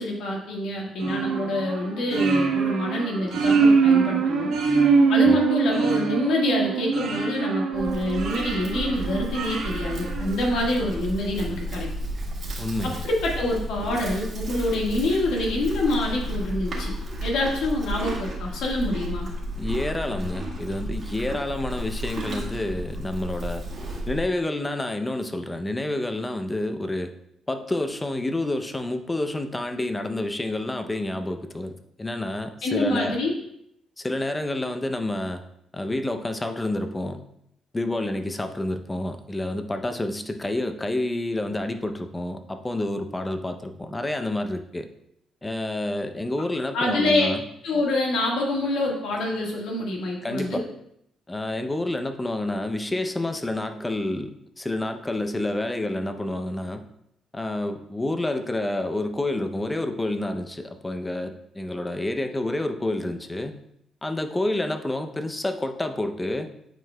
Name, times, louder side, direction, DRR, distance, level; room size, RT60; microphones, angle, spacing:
voice 1, 0.0-4.5 5.1-11.9 12.8-16.9 17.2-19.3 32.6-33.3 46.7-47.3 47.6-50.6, left 1 dB, 85° left, -1 dB, 1.6 m, -26 dB
sound 1, 1.0-10.8, right 5 dB, 80° right, 1.1 m, -23 dB
Livestock farm animals working animals, 7.7-24.2, right 1 dB, 50° right, 1.7 m, -32 dB
voice 2, 12.6-13.0 19.6-23.6 24.1-27.1 27.5-31.7 32.0-33.2 34.0-35.4 35.7-37.2 37.7-44.9 45.4-47.4 50.2-50.6 51.3-56.8 57.3-63.5 64.0-66.5, left 1 dB, 15° left, 7 dB, 0.6 m, -29 dB
9.1 x 4.6 x 2.3 m, 0.76 s
cardioid pair, 90°, 0 cm